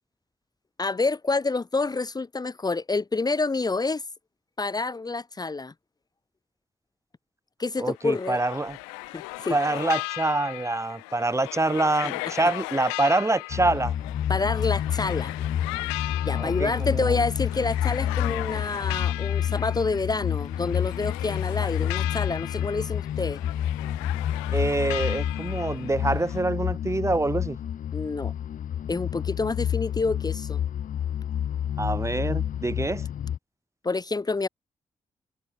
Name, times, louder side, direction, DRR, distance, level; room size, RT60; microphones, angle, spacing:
voice 1, 0.8-4.0 4.6-5.7 7.6-8.4 9.1-9.6 14.3-15.3 16.2-23.4 27.9-28.3 28.9-30.6 33.8-34.5, left 3 dB, 25° left, 0.9 m, -28 dB
sound 1, 7.8-26.4, left 40 dB or more, 90° left, 3.6 m, -37 dB
voice 2, 7.8-8.8 9.5-13.9 16.4-17.2 24.5-27.6 31.8-33.0, right 2 dB, 20° right, 1.3 m, -26 dB
sound 2, 13.5-33.4, left 10 dB, 65° left, 2.4 m, -29 dB
open air
hypercardioid pair, 40°, 14 cm